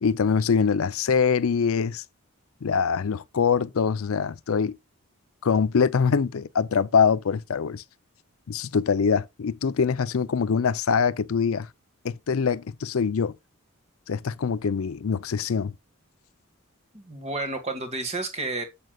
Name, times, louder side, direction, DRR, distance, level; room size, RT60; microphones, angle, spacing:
voice 1, 0.0-2.0 2.6-4.8 5.4-7.8 8.5-11.7 12.0-13.3 14.1-15.7, left 6 dB, 70° left, 0.5 m, -24 dB
voice 2, 16.9-18.6, right 3 dB, 30° right, 1.7 m, -31 dB
9.0 x 7.9 x 2.3 m
head